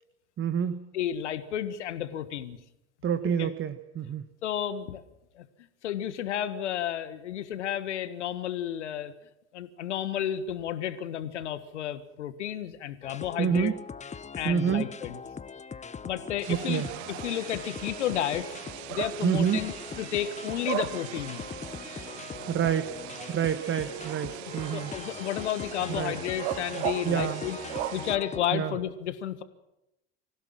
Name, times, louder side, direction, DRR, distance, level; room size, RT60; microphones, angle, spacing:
voice 1, 0.4-0.9 3.0-4.2 13.4-13.8 14.4-14.9 16.5-16.9 19.2-19.6 22.5-23.0 23.3-24.9 25.9-26.1 27.0-27.4 28.5-28.7, right 8 dB, 35° right, 11 dB, 1.5 m, -27 dB
voice 2, 0.9-2.6 3.2-3.5 4.4-5.0 5.3-5.4 5.8-9.1 9.5-13.7 14.3-15.2 16.0-16.8 17.1-18.6 18.9-21.5 24.7-27.6 27.9-29.4, left 10 dB, 80° left, 12 dB, 1.6 m, -32 dB
sound 1, 13.0-28.5, left 6 dB, 20° left, 0.9 m, -41 dB
sound 2, 16.4-28.2, right 17 dB, 65° right, 0.9 m, -38 dB
25.5 x 16.5 x 7.6 m, 0.90 s
figure-of-eight pair, 65°, 35 cm